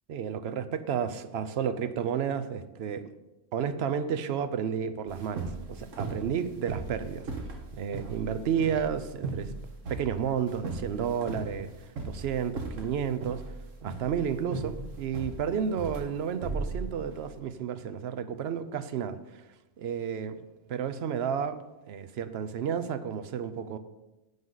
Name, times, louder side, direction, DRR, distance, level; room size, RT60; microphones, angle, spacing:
voice 1, 0.1-3.0 3.5-7.3 7.7-9.5 9.9-11.7 12.0-13.4 13.8-19.4 19.8-20.4 20.7-21.6 21.9-23.8, right 7 dB, 60° right, 11 dB, 0.8 m, -31 dB
sound 1, 5.1-17.3, right 3 dB, 80° right, 1.6 m, -37 dB
10.5 x 7.9 x 3.9 m, 1.0 s
omnidirectional pair, 1.3 m